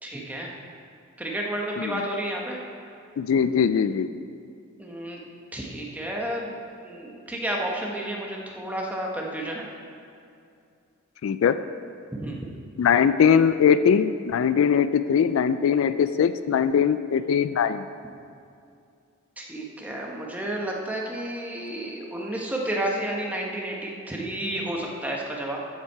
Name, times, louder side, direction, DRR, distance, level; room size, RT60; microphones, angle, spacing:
voice 1, 0.0-0.5 1.2-2.6 4.8-5.2 5.5-9.7 12.2-12.4 19.4-25.6, right 1 dB, 5° right, -2 dB, 1.1 m, -31 dB
voice 2, 3.2-4.1 11.2-11.6 12.8-17.9, left 7 dB, 70° left, 12 dB, 0.3 m, -21 dB
13.5 x 5.8 x 4.6 m, 2.5 s
head